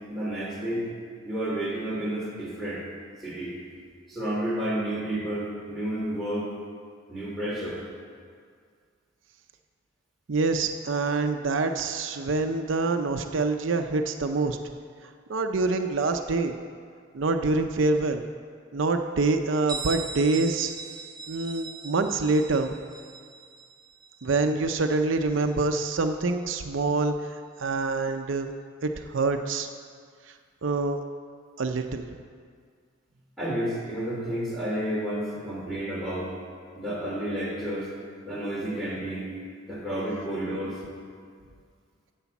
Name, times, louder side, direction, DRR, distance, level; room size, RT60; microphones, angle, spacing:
voice 1, 0.1-0.9 1.2-2.8 3.2-3.5 4.1-6.5 7.1-7.8 33.4-36.3 36.7-37.9 38.2-39.3 39.7-40.8, right 1 dB, ahead, -6 dB, 3.0 m, -31 dB
voice 2, 10.3-14.6 15.3-16.5 17.1-18.2 18.7-20.7 21.3-22.8 24.2-28.5 28.8-29.7 30.6-31.0 31.6-32.0, right 3 dB, 75° right, 6 dB, 0.6 m, -26 dB
Bell, 19.7-25.2, right 5 dB, 20° right, 0.7 m, -40 dB
9.9 x 8.0 x 7.1 m, 2.1 s
head